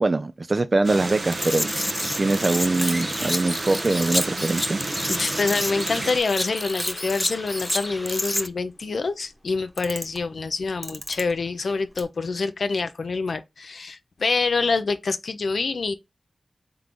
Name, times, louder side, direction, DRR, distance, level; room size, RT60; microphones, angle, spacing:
voice 1, 0.0-1.7 2.2-4.8, right 2 dB, 50° right, 0.3 m, -23 dB
sound 1, 0.8-6.2, right 3 dB, 70° right, 0.8 m, -32 dB
sound 2, 1.2-8.5, left 1 dB, 15° left, 0.4 m, -29 dB
sound 3, 2.5-12.0, equal, 5° right, 1.0 m, -38 dB
voice 2, 5.1-15.9, left 4 dB, 80° left, 0.4 m, -26 dB
3.8 x 3.6 x 3.0 m
cardioid pair, 50°, 0 cm